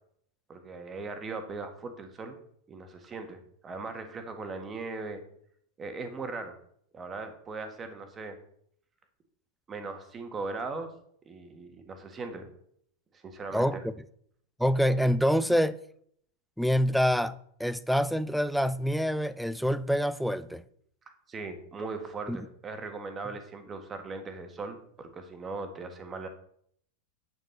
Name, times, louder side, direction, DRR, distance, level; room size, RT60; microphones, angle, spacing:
voice 1, 0.5-2.4 2.7-5.2 5.8-6.6 6.9-8.4 9.7-10.9 11.2-12.5 13.1-13.8 21.3-26.3, right 3 dB, 20° right, 1.9 m, -39 dB
voice 2, 13.5-13.9 14.6-15.8 16.6-20.6 22.3-22.4, equal, ahead, 0.5 m, -26 dB
9.1 x 9.1 x 4.2 m
figure-of-eight pair, 90°, 0 cm